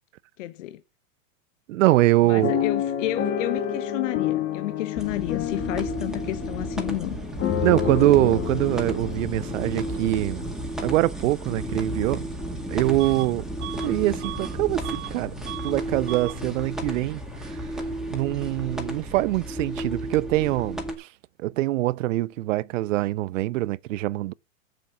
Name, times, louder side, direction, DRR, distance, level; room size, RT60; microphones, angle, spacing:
voice 1, 0.4-0.8 2.2-7.2, left 15 dB, 65° left, 0.9 m, -31 dB
voice 2, 1.7-2.6 7.6-10.4 10.8-12.3 12.7-13.5 13.8-15.3 15.6-17.2 17.5-17.6 18.1-21.1 21.4-24.3, right 17 dB, 70° right, 0.5 m, -23 dB
sound 1, 2.4-10.5 11.1-11.2 11.5-11.8, left 10 dB, 35° left, 1.8 m, -29 dB
sound 2, 5.0-21.0, right 1 dB, ahead, 2.0 m, -33 dB
Bus / Alarm, 13.0-13.3 13.6-15.2 15.4-15.8 16.1-16.4, right 19 dB, 30° right, 0.7 m, -38 dB
7.6 x 7.1 x 7.0 m
hypercardioid pair, 130°, 40 cm